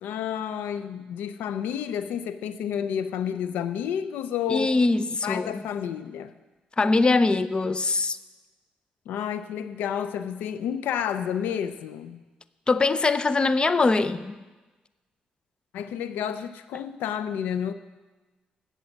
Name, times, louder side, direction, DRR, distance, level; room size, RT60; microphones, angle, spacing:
voice 1, 0.0-4.8 5.2-6.3 9.1-12.2 15.7-17.7, left 8 dB, 85° left, 0.4 m, -30 dB
voice 2, 4.5-5.6 6.8-8.2 12.7-14.4, left 3 dB, 30° left, 0.5 m, -22 dB
7.8 x 7.6 x 8.3 m
cardioid pair, 70°, 3 cm